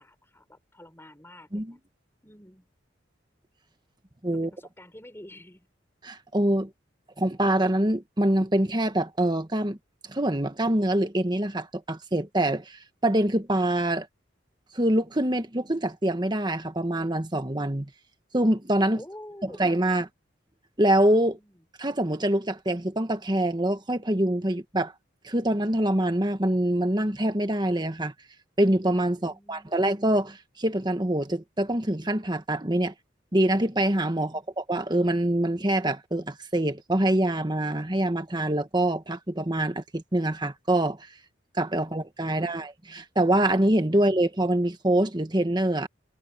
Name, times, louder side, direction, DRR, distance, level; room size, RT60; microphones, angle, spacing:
voice 1, 0.0-1.8 2.2-2.6 4.3-5.7 18.9-20.0 21.3-21.6 29.1-29.8 34.2-34.5 41.8-41.9 43.9-44.0, left 1 dB, 15° left, 4.8 m, -49 dB
voice 2, 6.0-6.7 7.2-9.8 10.1-14.1 14.7-17.9 18.3-19.0 19.6-20.1 20.8-21.4 21.8-24.9 25.2-28.1 28.6-32.9 33.3-41.0 41.6-45.9, right 1 dB, 25° right, 1.5 m, -25 dB
head